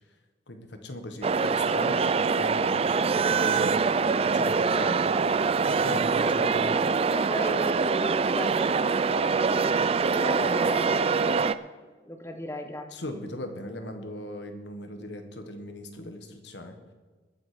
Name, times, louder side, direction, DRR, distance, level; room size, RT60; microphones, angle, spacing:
voice 1, 0.5-3.7 4.2-5.1 5.7-6.7 12.9-16.8, left 1 dB, 75° left, 6 dB, 1.5 m, -39 dB
sound 1, 1.2-11.5, right 5 dB, 35° right, 0.4 m, -24 dB
voice 2, 4.4-5.3 6.2-9.7 10.0-11.6 12.0-12.9 16.0-16.1, equal, 15° left, 5 dB, 1.1 m, -37 dB
20.5 x 7.3 x 5.1 m, 1.3 s
head